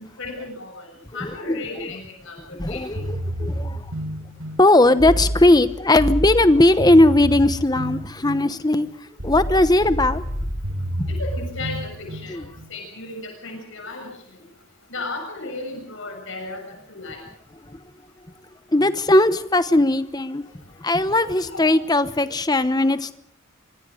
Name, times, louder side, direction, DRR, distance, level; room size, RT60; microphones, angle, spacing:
voice 1, 0.2-0.9 1.1-3.1 10.1-10.2 11.1-14.1 14.9-17.2 21.1-21.7, left 3 dB, 60° left, 2 dB, 6.9 m, -35 dB
voice 2, 1.2-1.6 2.6-3.8 4.6-8.9 9.2-10.2 11.0-11.1 12.3-12.4 18.7-20.4 20.8-23.1, left 1 dB, 20° left, 13 dB, 0.9 m, -18 dB
sound 1, 3.0-12.7, equal, 85° right, 5.8 m, -29 dB
25.0 x 24.5 x 5.1 m, 0.64 s
head